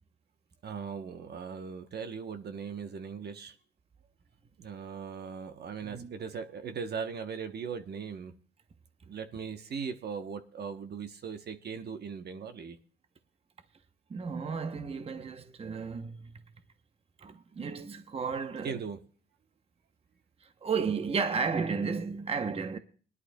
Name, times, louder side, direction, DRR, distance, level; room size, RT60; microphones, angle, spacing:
voice 1, 0.6-3.5 4.6-8.3 9.1-12.8 18.6-19.0, right 6 dB, 55° right, 1.0 m, -39 dB
voice 2, 5.8-6.1 14.1-16.4 17.2-18.7 20.4-22.8, right 5 dB, 30° right, 0.8 m, -33 dB
20.5 x 11.0 x 2.2 m
cardioid pair, 90°, 20 cm